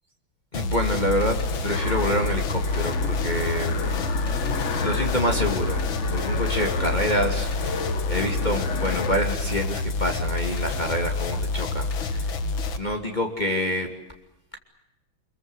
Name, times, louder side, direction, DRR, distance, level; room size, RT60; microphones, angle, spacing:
sound 1, 0.5-12.8, left 3 dB, 70° left, 2.3 m, -28 dB
voice 1, 0.5-3.8 4.2-4.4 4.7-12.3 12.7-13.9, equal, 20° left, 2 dB, 2.9 m, -27 dB
Piano, 0.8-8.8, right 1 dB, 90° right, 4.9 m, -35 dB
sound 2, 1.7-9.2, left 5 dB, 40° left, 1.5 m, -32 dB
27.0 x 22.5 x 8.2 m, 0.90 s
omnidirectional pair, 2.3 m